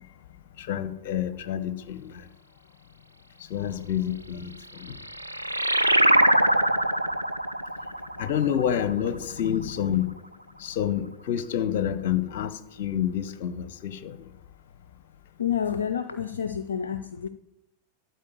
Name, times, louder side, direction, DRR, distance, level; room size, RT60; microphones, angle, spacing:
voice 1, 0.6-2.3 3.5-5.0 8.2-10.1 10.6-14.3, left 10 dB, 55° left, 0.9 m, -28 dB
sound 1, 4.6-9.7, right 1 dB, 90° right, 0.6 m, -24 dB
voice 2, 15.4-17.3, left 8 dB, 70° left, 0.5 m, -29 dB
12.5 x 4.5 x 8.4 m
figure-of-eight pair, 90°, 0 cm